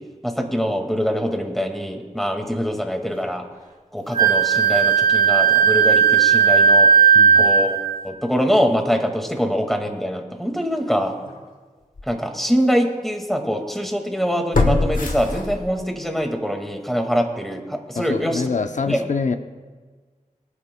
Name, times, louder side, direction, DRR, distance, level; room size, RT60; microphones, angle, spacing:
voice 1, 0.2-3.4 3.9-6.9 7.4-7.8 8.0-11.2 12.0-18.4 18.9-19.0, equal, ahead, 3 dB, 2.0 m, -23 dB
Wind instrument woodwind instrument, 4.1-7.9, right 6 dB, 80° right, 1.5 m, -15 dB
voice 2, 7.1-7.5 18.0-19.4, left 4 dB, 60° left, 8 dB, 0.7 m, -25 dB
sound 1, 11.2-11.4 12.0-12.1 14.5-16.0 16.4-16.5, left 3 dB, 75° left, 1.4 m, -22 dB
24.0 x 9.9 x 2.3 m, 1.4 s
cardioid pair, 40°, 14 cm